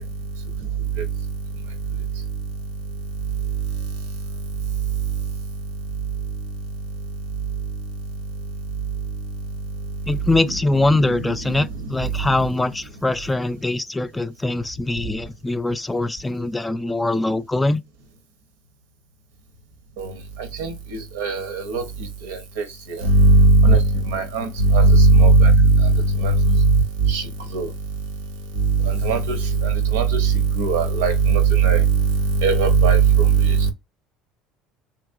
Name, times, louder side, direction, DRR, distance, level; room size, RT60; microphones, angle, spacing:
voice 1, 10.1-17.8, left 2 dB, 15° left, 0.3 m, -22 dB
voice 2, 21.2-21.8 23.0-23.8 24.1-24.4 24.7-25.5 26.2-26.3 27.1-27.2 27.5-27.7 29.0-29.4 29.9-30.3 30.6-31.8 32.4-33.0, right 3 dB, 85° right, 0.7 m, -16 dB
2.9 x 2.8 x 2.5 m
hypercardioid pair, 75°, 0 cm